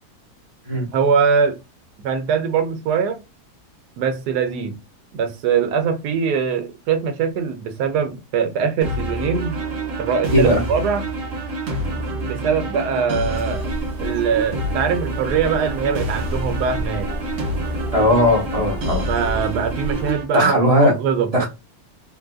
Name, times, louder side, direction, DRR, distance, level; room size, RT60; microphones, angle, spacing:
voice 1, 0.9-1.6 2.0-3.2 4.0-4.8 5.1-9.6 10.0-11.1 12.2-13.6 14.0-17.1 19.0-21.5, right 6 dB, 75° right, 1.1 m, -22 dB
sound 1, 8.8-20.2, right 2 dB, 55° right, 1.2 m, -27 dB
voice 2, 10.3-10.6 11.9-12.0 17.9-19.1 20.3-20.9 21.3-21.5, left 1 dB, 30° right, 0.8 m, -17 dB
sound 2, 13.3-20.1, equal, ahead, 0.6 m, -32 dB
3.7 x 2.4 x 2.3 m
omnidirectional pair, 1.8 m